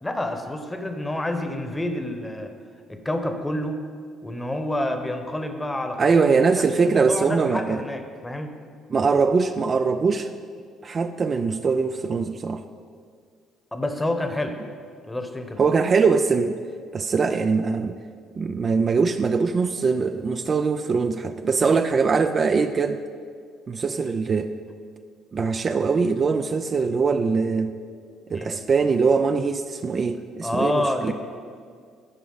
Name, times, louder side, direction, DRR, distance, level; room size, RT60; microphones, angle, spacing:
voice 1, 0.0-2.5 2.9-3.8 4.2-6.2 6.5-8.5 13.7-14.6 15.1-15.6 28.3-28.6 30.4-31.1, left 1 dB, 15° left, 6 dB, 1.0 m, -28 dB
voice 2, 6.0-7.8 8.9-10.3 10.8-12.6 15.6-16.6 16.9-18.0 18.4-23.0 23.7-24.5 25.3-27.8 28.3-31.1, right 5 dB, 40° right, 8 dB, 0.4 m, -22 dB
14.5 x 4.9 x 3.9 m, 2.1 s
hypercardioid pair, 55°, 0 cm